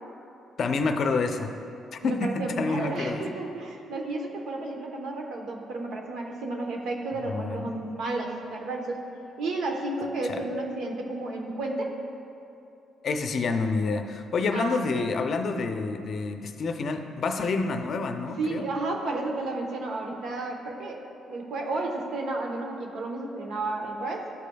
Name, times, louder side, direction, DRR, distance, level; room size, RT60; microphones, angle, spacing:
voice 1, 0.6-1.5 1.9-3.3 7.2-7.7 10.2-10.4 13.0-18.7, left 4 dB, 55° left, 6 dB, 0.5 m, -28 dB
voice 2, 2.0-9.0 9.4-11.9 14.5-15.1 18.4-24.2, right 2 dB, 75° right, 1 dB, 1.0 m, -32 dB
12.5 x 5.0 x 2.3 m, 2.7 s
cardioid pair, 90°, 0 cm